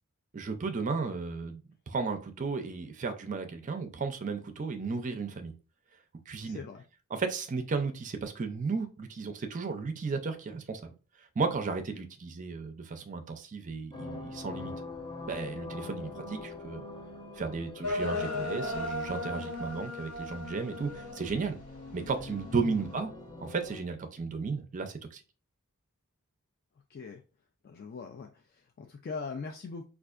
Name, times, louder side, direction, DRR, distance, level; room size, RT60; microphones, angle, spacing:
voice 1, 0.3-5.5 6.3-6.6 7.1-10.9 11.4-14.7 15.3-16.8 17.4-21.6 21.9-23.1 23.4-25.2, right 4 dB, 35° right, 7 dB, 0.4 m, -34 dB
voice 2, 6.4-6.8 22.6-22.8 26.9-27.2 27.6-29.8, left 4 dB, 45° left, 3 dB, 0.3 m, -41 dB
sound 1, 13.9-23.8, left 3 dB, 20° left, 0.8 m, -44 dB
sound 2, 17.8-21.6 22.1-22.5, left 2 dB, 80° left, 0.8 m, -36 dB
4.5 x 2.4 x 2.4 m, 0.33 s
head